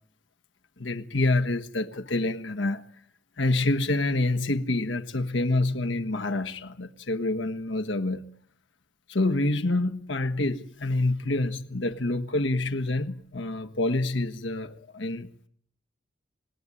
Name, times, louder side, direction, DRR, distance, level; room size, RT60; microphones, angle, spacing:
voice 1, 0.8-2.8 3.4-8.2 9.1-15.5, left 2 dB, 80° left, 1.6 m, -27 dB
26.5 x 19.5 x 9.9 m
head